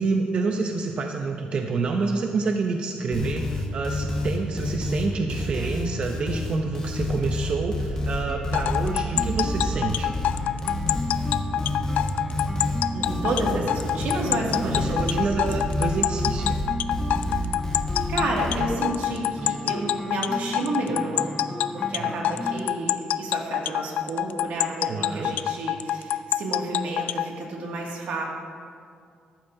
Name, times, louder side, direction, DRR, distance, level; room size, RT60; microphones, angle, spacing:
voice 1, 0.0-10.2 14.6-16.6 22.0-22.2 24.9-25.3, right 4 dB, 40° right, 4 dB, 0.6 m, -28 dB
sound 1, 3.1-18.6, left 2 dB, 25° left, 1.4 m, -29 dB
sound 2, 8.3-22.7, left 1 dB, 5° left, 0.4 m, -35 dB
sound 3, 8.5-27.3, left 11 dB, 85° left, 0.3 m, -26 dB
voice 2, 12.9-15.5 18.1-21.3 21.7-28.2, right 2 dB, 85° right, -1 dB, 2.1 m, -30 dB
14.5 x 11.5 x 2.7 m, 2.3 s
cardioid pair, 160°, 3 cm